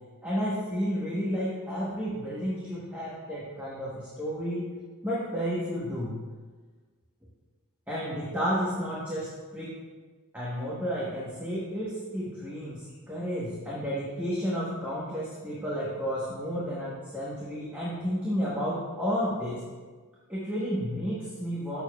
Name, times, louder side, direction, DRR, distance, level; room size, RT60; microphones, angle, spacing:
voice 1, 0.2-4.6 5.0-6.1 7.9-9.7 10.3-19.6 20.3-21.8, equal, 10° right, -8 dB, 1.0 m, -31 dB
6.8 x 6.7 x 2.3 m, 1.4 s
head